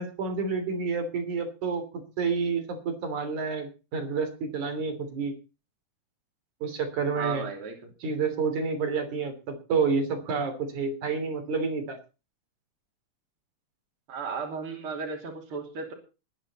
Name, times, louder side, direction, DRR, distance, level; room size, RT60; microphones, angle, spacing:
voice 1, 0.0-1.8 2.2-5.3 6.6-7.5 8.0-12.0, right 5 dB, 80° right, 5 dB, 4.6 m, -29 dB
voice 2, 7.1-7.8 14.1-15.9, right 5 dB, 45° right, 2 dB, 3.9 m, -34 dB
20.5 x 10.0 x 4.2 m, 0.32 s
omnidirectional pair, 3.4 m